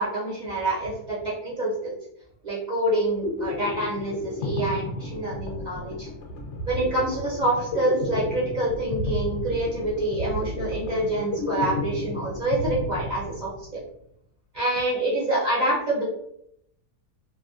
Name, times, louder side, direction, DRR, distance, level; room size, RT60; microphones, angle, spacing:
voice 1, 0.0-1.9 2.4-6.1 6.6-13.8 14.5-16.1, right 1 dB, 40° right, -7 dB, 0.6 m, -26 dB
sound 1, 3.2-13.7, left 2 dB, 65° left, 0.7 m, -32 dB
3.4 x 2.2 x 2.4 m, 0.74 s
omnidirectional pair, 1.7 m